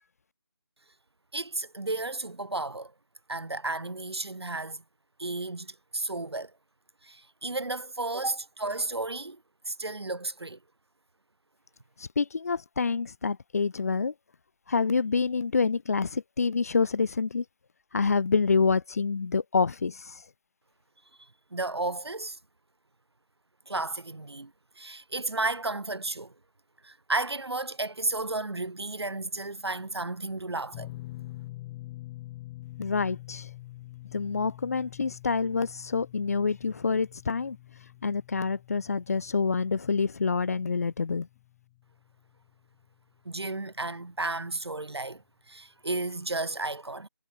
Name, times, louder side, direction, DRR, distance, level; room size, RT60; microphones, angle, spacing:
voice 1, 1.3-2.9 3.3-4.8 5.2-6.5 7.0-9.4 9.7-10.6 21.5-22.4 23.7-24.5 24.8-26.3 26.8-30.9 43.2-47.1, right 2 dB, 85° right, 1.6 m, -33 dB
voice 2, 12.0-14.1 14.7-17.4 17.9-20.2 32.8-33.5 34.1-37.6 38.0-41.3, left 5 dB, 40° left, 0.8 m, -27 dB
sound 1, 30.7-43.0 43.2-43.5 45.1-45.2, left 17 dB, 15° left, 2.0 m, -46 dB
figure-of-eight pair, 165°, 13 cm